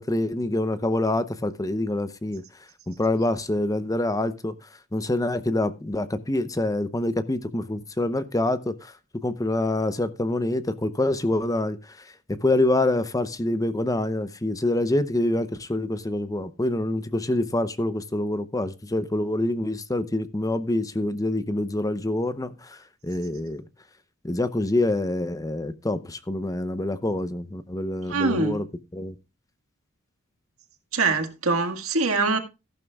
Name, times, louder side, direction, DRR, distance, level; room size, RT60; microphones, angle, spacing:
voice 1, 0.0-2.4 2.9-4.5 4.9-8.9 9.2-11.8 12.3-22.8 23.0-23.6 24.2-28.6 28.9-29.1, left 1 dB, 15° left, 0.7 m, -26 dB
voice 2, 28.1-28.6 30.9-32.4, right 3 dB, 85° right, 1.8 m, -23 dB
14.5 x 11.5 x 2.3 m
head